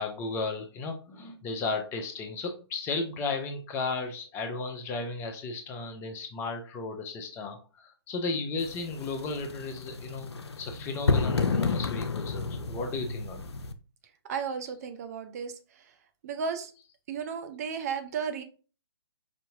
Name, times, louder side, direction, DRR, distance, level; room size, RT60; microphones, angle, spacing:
voice 1, 0.0-10.3 10.6-13.4, left 3 dB, 15° left, 5 dB, 0.6 m, -34 dB
sound 1, 8.6-13.7, left 4 dB, 75° left, 0.5 m, -30 dB
voice 2, 14.3-15.5 16.2-16.7 17.1-18.4, right 6 dB, 35° right, 7 dB, 0.5 m, -33 dB
5.1 x 2.7 x 2.7 m, 0.36 s
figure-of-eight pair, 130°, 14 cm